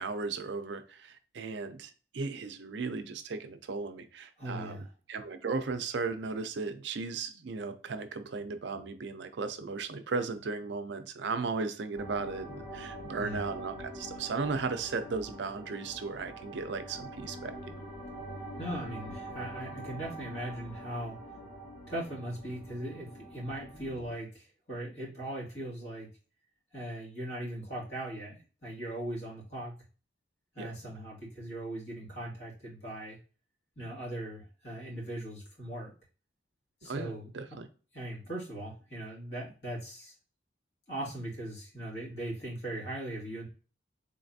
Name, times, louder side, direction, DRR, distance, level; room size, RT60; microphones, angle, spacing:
voice 1, 0.0-17.5 30.6-30.7 36.8-37.7, right 4 dB, 65° right, 9 dB, 0.4 m, -36 dB
voice 2, 4.4-4.8 13.2-13.4 18.6-21.2 21.9-26.1 26.7-29.7 30.5-33.2 33.8-35.9 36.8-37.3 37.9-40.1 40.9-43.5, right 1 dB, 55° left, -4 dB, 2.1 m, -39 dB
sound 1, 12.0-24.1, right 1 dB, 30° left, 1.6 m, -44 dB
3.9 x 3.2 x 2.6 m, 0.37 s
head